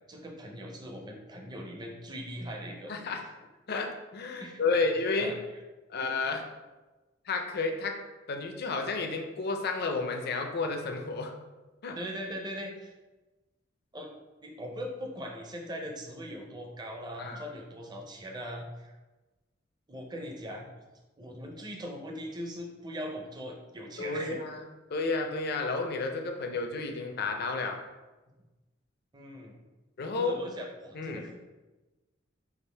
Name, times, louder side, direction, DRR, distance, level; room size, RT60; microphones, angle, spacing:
voice 1, 0.1-2.9 4.4-4.8 5.2-5.3 12.0-12.9 13.9-14.1 14.4-18.9 19.9-20.7 21.2-24.4 29.1-29.6 30.2-31.4, equal, 20° right, 1 dB, 0.5 m, -40 dB
voice 2, 2.9-3.2 3.7-5.3 5.9-6.4 7.3-8.0 8.3-11.3 11.8-12.0 17.2-17.4 24.0-24.6 24.9-27.8 30.0-30.4 30.9-31.3, left 3 dB, 55° left, 4 dB, 0.5 m, -31 dB
4.9 x 2.4 x 3.3 m, 1.2 s
head